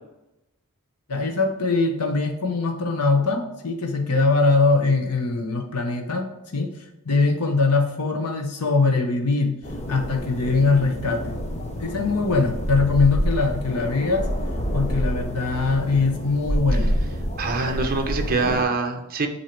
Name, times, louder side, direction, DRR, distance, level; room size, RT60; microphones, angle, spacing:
voice 1, 1.1-6.8 7.0-9.6 9.9-11.4 11.8-14.3 14.7-16.9, left 3 dB, 90° left, 3 dB, 0.9 m, -22 dB
sound 1, 9.6-18.6, equal, 30° left, 0.9 m, -28 dB
voice 2, 17.4-19.3, right 3 dB, 40° right, 4 dB, 0.9 m, -24 dB
7.9 x 2.9 x 4.5 m, 0.93 s
head